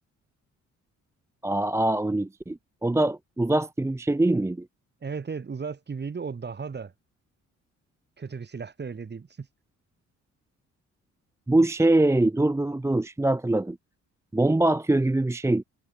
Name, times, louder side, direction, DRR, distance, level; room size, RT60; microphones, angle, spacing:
voice 1, 1.4-4.7 11.5-13.8 14.3-15.6, right 2 dB, 10° right, 0.8 m, -23 dB
voice 2, 5.0-6.9 8.2-9.5, right 5 dB, 35° right, 4.2 m, -35 dB
cardioid pair, 90°, 30 cm